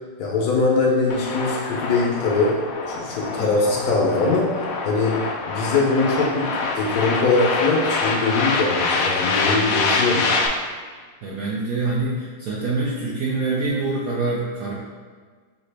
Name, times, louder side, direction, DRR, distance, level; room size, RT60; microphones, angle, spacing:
voice 1, 0.2-2.6 2.9-5.2 5.5-10.3, left 3 dB, 70° left, -2 dB, 1.0 m, -22 dB
sound 1, 1.1-10.5, left 3 dB, 85° left, 0.7 m, -25 dB
voice 2, 11.2-14.7, right 3 dB, 75° right, -4 dB, 0.8 m, -25 dB
4.9 x 2.8 x 3.3 m, 1.5 s
omnidirectional pair, 2.0 m